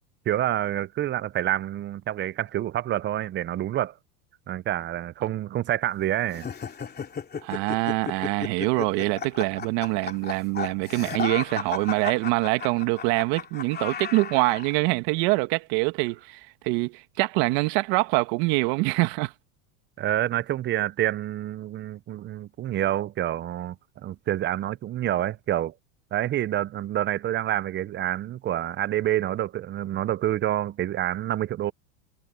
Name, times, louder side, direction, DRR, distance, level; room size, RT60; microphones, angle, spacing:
voice 1, 0.3-3.9 4.5-6.5 20.0-23.8 24.0-25.7 26.1-31.7, right 12 dB, 25° right, 0.6 m, -27 dB
sound 1, 6.3-14.8, left 6 dB, 20° left, 3.0 m, -34 dB
voice 2, 7.4-19.3, right 24 dB, 55° right, 1.5 m, -25 dB
supercardioid pair, 120°, 44 cm